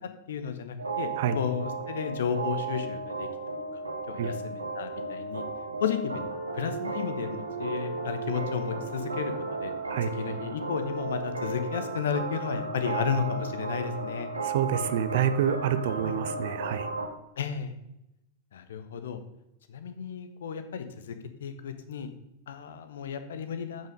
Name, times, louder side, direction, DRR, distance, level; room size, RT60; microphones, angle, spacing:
voice 1, 0.0-1.1 1.3-3.3 3.7-3.8 4.1-5.4 5.8-6.3 6.5-9.7 10.2-14.3 16.1-16.2 17.4-17.7 18.5-19.2 19.7-22.1 22.5-23.9, left 7 dB, 60° left, 9 dB, 1.0 m, -33 dB
sound 1, 0.8-17.1, right 3 dB, 80° right, 1.3 m, -34 dB
voice 2, 14.4-16.9, right 9 dB, 55° right, 12 dB, 0.7 m, -27 dB
8.9 x 5.8 x 5.3 m, 0.86 s
figure-of-eight pair, 90°, 0 cm